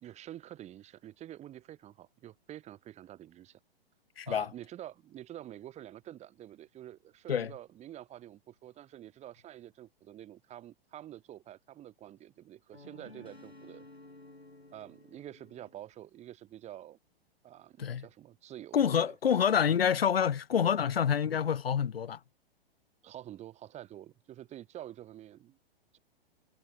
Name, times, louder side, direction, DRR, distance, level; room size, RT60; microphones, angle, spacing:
voice 1, 0.0-3.6 4.3-13.9 14.7-17.0 17.4-19.2 23.0-25.6 25.9-26.0, right 12 dB, 20° right, 2.1 m, -48 dB
voice 2, 4.2-4.5 7.3-7.5 17.8-18.0 18.7-22.2, left 8 dB, 70° left, 1.0 m, -27 dB
sound 1, 12.7-15.9, left 2 dB, 90° left, 5.8 m, -53 dB
figure-of-eight pair, 110°, 30 cm